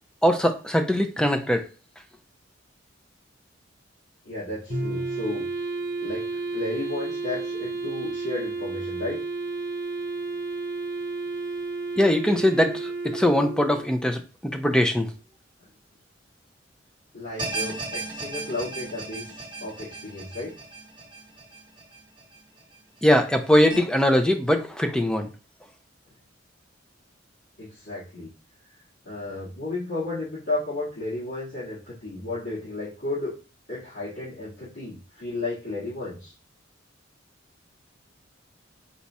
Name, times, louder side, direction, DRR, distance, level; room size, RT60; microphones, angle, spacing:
voice 1, 0.2-1.6 12.0-15.1 23.0-25.3, left 1 dB, 5° left, 5 dB, 0.4 m, -21 dB
voice 2, 4.2-5.5 6.0-6.2 6.5-9.2 17.1-20.6 27.6-28.3 29.1-33.3 33.7-36.3, left 2 dB, 85° left, -12 dB, 2.0 m, -33 dB
Bowed string instrument, 4.7-5.6, left 1 dB, 45° left, 0.6 m, -33 dB
Wind instrument woodwind instrument, 4.7-13.9, right 3 dB, 50° right, 0.6 m, -32 dB
sound 1, 17.4-22.6 23.0-23.1 23.7-23.8, right 3 dB, 25° right, 0.9 m, -36 dB
4.1 x 2.4 x 4.1 m, 0.34 s
head